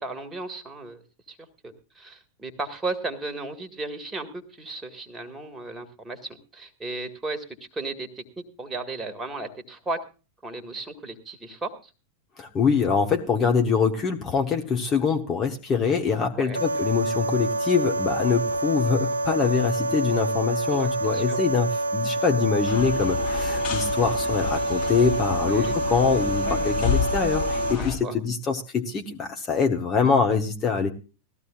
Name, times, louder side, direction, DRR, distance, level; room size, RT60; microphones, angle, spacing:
voice 1, 0.0-1.0 1.3-1.4 1.6-8.2 8.6-10.0 10.4-11.9 16.3-16.6 20.7-21.4 25.5-25.8 27.7-28.2, right 3 dB, 15° right, 7 dB, 1.9 m, -35 dB
voice 2, 12.4-30.9, left 5 dB, 25° left, 3 dB, 1.3 m, -24 dB
sound 1, 16.5-27.7, right 2 dB, 75° right, 0.8 m, -27 dB
sound 2, 22.6-28.0, left 7 dB, 40° left, 4.1 m, -30 dB
18.5 x 14.5 x 2.5 m, 0.33 s
figure-of-eight pair, 90°, 0 cm